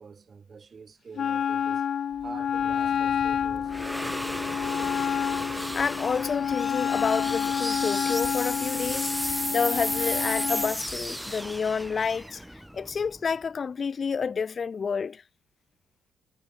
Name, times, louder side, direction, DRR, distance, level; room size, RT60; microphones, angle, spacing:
voice 1, 0.0-1.9 2.2-3.8, right 5 dB, 40° right, 2.4 m, -46 dB
Wind instrument woodwind instrument, 1.2-10.8, left 8 dB, 60° left, 0.3 m, -29 dB
sound 1, 2.2-13.4, equal, ahead, 1.0 m, -34 dB
voice 2, 5.6-12.4 12.7-15.2, left 6 dB, 40° left, 0.8 m, -29 dB
cardioid pair, 90°, 0 cm